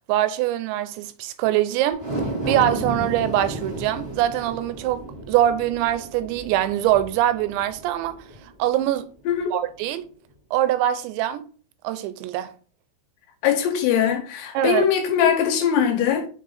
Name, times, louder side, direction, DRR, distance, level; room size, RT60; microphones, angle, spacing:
voice 1, 0.1-2.0 2.5-8.2 8.6-9.1 9.5-10.1 10.5-11.4 11.8-12.5 14.5-14.8, right 12 dB, 85° right, 2.9 m, -23 dB
sound 1, 1.9-8.4 8.8-8.9, right 2 dB, 20° right, 1.9 m, -32 dB
voice 2, 13.4-16.3, left 8 dB, 80° left, 2.6 m, -21 dB
6.3 x 3.7 x 4.0 m
omnidirectional pair, 5.0 m